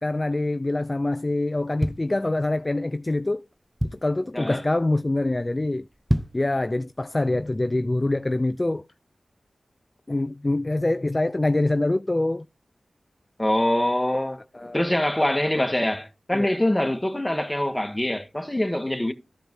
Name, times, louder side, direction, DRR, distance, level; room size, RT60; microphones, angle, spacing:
voice 1, 0.0-3.4 3.9-5.9 6.3-8.8 10.1-12.5 14.5-14.8 16.3-16.5, left 2 dB, 30° left, 0.3 m, -25 dB
sound 1, 1.6-2.8 3.3-3.4 3.5-4.3 4.8-5.0 5.3-5.4 5.9-6.5 7.0-7.1, equal, 5° right, 0.7 m, -28 dB
voice 2, 13.4-14.4 14.7-19.1, left 1 dB, 15° left, 1.6 m, -24 dB
13.5 x 5.0 x 3.1 m
cardioid pair, 45°, 0 cm